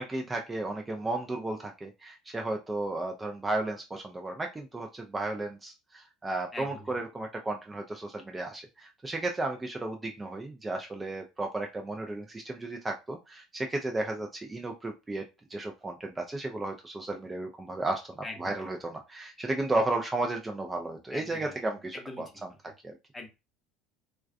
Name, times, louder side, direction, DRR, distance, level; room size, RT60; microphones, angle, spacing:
voice 1, 0.0-22.5 22.8-23.0, right 2 dB, 20° right, 2 dB, 0.4 m, -34 dB
voice 2, 6.5-7.0 18.2-18.7 21.1-21.6 21.9-22.4 23.1-23.3, left 2 dB, 20° left, 3 dB, 0.8 m, -42 dB
2.3 x 2.2 x 2.4 m, 0.26 s
hypercardioid pair, 70°, 0 cm